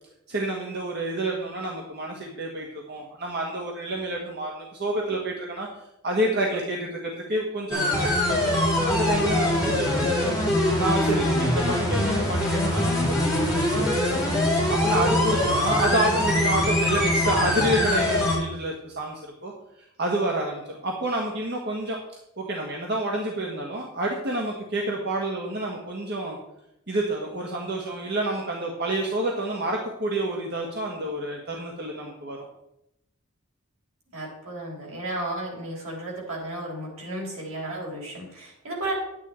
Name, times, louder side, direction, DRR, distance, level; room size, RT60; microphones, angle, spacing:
voice 1, 0.3-5.7 6.0-10.3 10.8-14.4 14.7-19.5 20.0-22.0 22.4-26.4 26.9-32.4, right 1 dB, 55° right, -1 dB, 1.5 m, -29 dB
sound 1, 7.7-18.4, left 1 dB, 5° right, 4.6 m, -23 dB
voice 2, 34.1-38.9, right 1 dB, 80° right, -2 dB, 4.1 m, -33 dB
11.0 x 9.2 x 4.3 m, 0.84 s
head